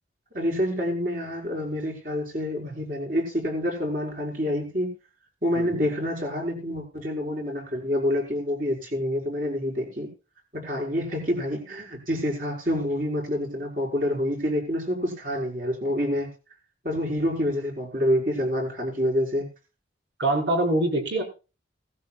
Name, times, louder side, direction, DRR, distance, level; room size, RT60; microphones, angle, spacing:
voice 1, 0.3-4.9 5.4-10.1 10.5-16.3 16.8-19.5, equal, 45° right, -1 dB, 5.9 m, -27 dB
voice 2, 5.5-5.9 20.2-21.2, right 1 dB, 75° right, 1 dB, 5.7 m, -24 dB
17.5 x 15.0 x 2.5 m, 0.32 s
head